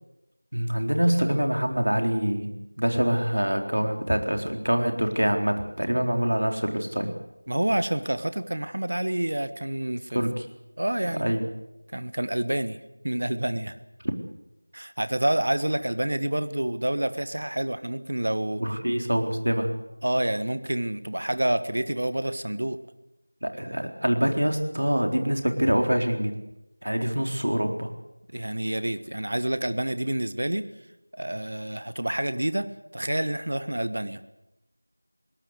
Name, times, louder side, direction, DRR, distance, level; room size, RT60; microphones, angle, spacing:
voice 1, 0.5-2.5 2.8-7.1 10.1-10.3 11.1-11.5 18.6-19.7 23.4-26.4 26.8-27.9, equal, 75° right, 5 dB, 4.0 m, -25 dB
voice 2, 7.5-10.2 10.8-11.3 11.9-13.8 14.7-18.6 20.0-22.8 28.3-30.6 31.1-34.2, right 1 dB, 50° right, 12 dB, 1.4 m, -28 dB
22.5 x 18.0 x 8.3 m, 0.93 s
figure-of-eight pair, 175°, 0 cm